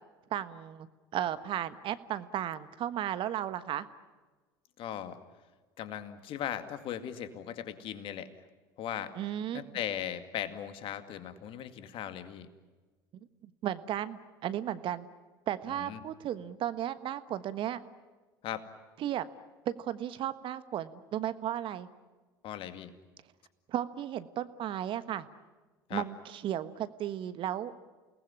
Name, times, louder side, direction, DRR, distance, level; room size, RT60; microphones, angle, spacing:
voice 1, 0.3-0.9 1.1-3.9 9.1-9.6 13.4-15.1 15.5-17.8 19.0-19.3 19.6-21.9 23.7-25.3 25.9-27.7, right 11 dB, 50° right, 13 dB, 1.4 m, -34 dB
voice 2, 4.8-5.2 5.8-8.3 8.8-9.1 9.5-12.5 15.7-16.0 18.4-18.7 22.4-22.9 25.9-26.0, left 10 dB, 50° left, 10 dB, 2.2 m, -38 dB
29.0 x 19.5 x 9.9 m, 1.3 s
hypercardioid pair, 75°, 11 cm